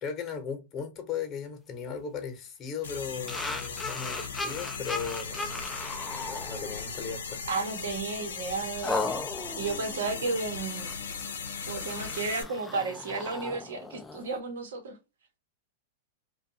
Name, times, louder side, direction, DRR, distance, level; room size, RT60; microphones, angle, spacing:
voice 1, 0.0-5.6 6.3-7.4, left 6 dB, 30° left, 0.9 m, -37 dB
sound 1, 2.8-12.4, left 5 dB, 85° left, 0.6 m, -38 dB
sound 2, 3.3-7.1 7.6-7.8 8.8-14.4, left 2 dB, 10° left, 0.3 m, -37 dB
voice 2, 7.5-9.1 9.6-10.9 11.7-15.0, right 4 dB, 80° right, 0.9 m, -33 dB
2.5 x 2.3 x 2.7 m
hypercardioid pair, 115°, 0 cm